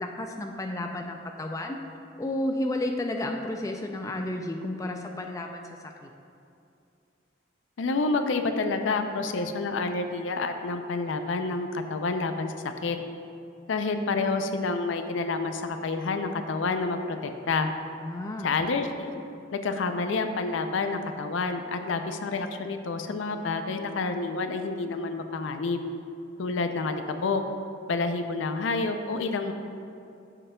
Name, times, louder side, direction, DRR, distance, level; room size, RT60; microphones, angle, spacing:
voice 1, 0.0-1.8 2.2-6.1 18.0-18.5, left 1 dB, 15° left, 3 dB, 0.3 m, -32 dB
voice 2, 7.8-12.5 12.8-13.0 13.7-17.7 18.4-19.1 19.5-25.8 26.4-27.4 27.9-29.5, left 3 dB, 75° left, 7 dB, 0.5 m, -28 dB
9.8 x 6.6 x 2.3 m, 2.6 s
head